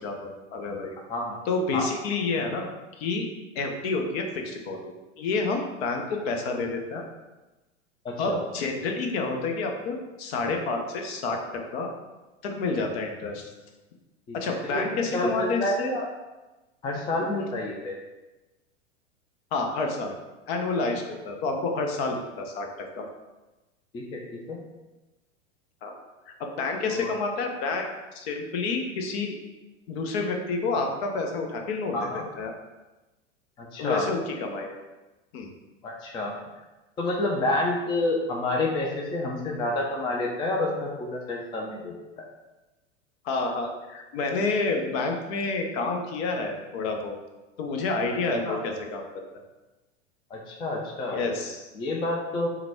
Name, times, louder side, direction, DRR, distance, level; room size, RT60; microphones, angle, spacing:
voice 1, 0.0-0.9 1.5-3.2 3.6-7.0 8.2-11.9 12.4-13.5 14.3-15.9 19.5-20.1 20.5-22.7 23.0-23.1 25.8-25.9 26.3-27.9 28.1-29.3 29.9-32.5 33.8-34.7 35.3-35.5 43.2-47.2 47.6-49.0 49.3-49.4 51.1-51.6, left 3 dB, 55° left, 3 dB, 0.8 m, -29 dB
voice 2, 8.0-8.4 14.3-14.4 14.6-16.1 16.8-17.9 23.9-24.2 24.5-24.6 26.9-27.2 31.9-32.2 33.6-34.1 35.8-36.3 37.0-42.2 48.4-48.6 50.3-51.2 51.7-52.5, left 2 dB, 15° left, -1 dB, 0.4 m, -29 dB
3.9 x 2.2 x 4.4 m, 1.1 s
hypercardioid pair, 100°, 38 cm